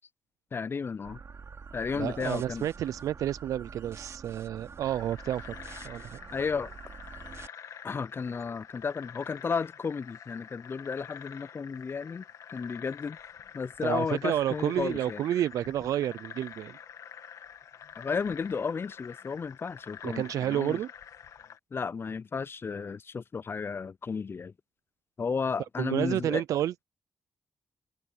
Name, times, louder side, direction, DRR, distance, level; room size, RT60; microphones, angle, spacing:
voice 1, 0.5-1.2 1.7-2.7 6.3-6.7 7.8-13.2 13.5-15.2 18.0-20.8 21.7-24.5 25.2-26.4, left 5 dB, 45° left, 0.4 m, -33 dB
sound 1, 1.0-7.5, right 5 dB, 55° right, 2.8 m, -46 dB
voice 2, 1.9-5.5 5.8-6.2 13.8-16.8 20.0-20.9 25.8-26.8, right 11 dB, 80° right, 0.4 m, -30 dB
sound 2, 4.8-21.6, left 8 dB, 75° left, 2.1 m, -47 dB
supercardioid pair, 50°, 6 cm